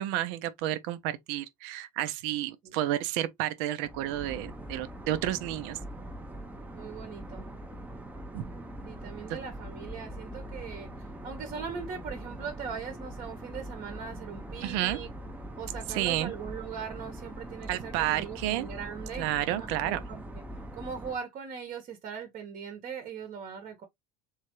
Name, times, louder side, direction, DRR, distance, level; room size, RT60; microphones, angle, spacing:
voice 1, 0.0-5.8 8.3-8.4 14.6-15.0 15.9-16.3 17.7-18.7 19.2-20.0, right 13 dB, 60° right, 0.8 m, -31 dB
sound 1, 3.8-21.2, right 1 dB, 10° right, 0.8 m, -42 dB
voice 2, 6.7-7.5 8.9-15.1 15.6-20.2 20.7-23.8, right 6 dB, 40° right, 1.2 m, -40 dB
3.6 x 3.2 x 3.0 m
hypercardioid pair, 75°, 19 cm